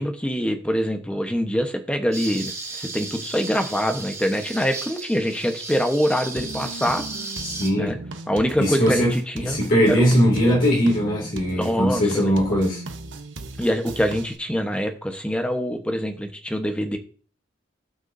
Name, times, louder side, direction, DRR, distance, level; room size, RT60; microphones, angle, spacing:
voice 1, 0.0-7.4 7.8-8.0 8.3-9.6 9.9-10.2 11.5-12.6 13.6-17.0, equal, 5° left, 1.1 m, -25 dB
sound 1, 2.1-7.7, right 3 dB, 20° right, 3.7 m, -35 dB
sound 2, 6.4-14.4, right 2 dB, 85° right, 1.1 m, -37 dB
voice 2, 7.4-8.0 8.6-9.1 9.4-12.8, equal, 45° left, 2.7 m, -20 dB
17.0 x 6.1 x 2.7 m
head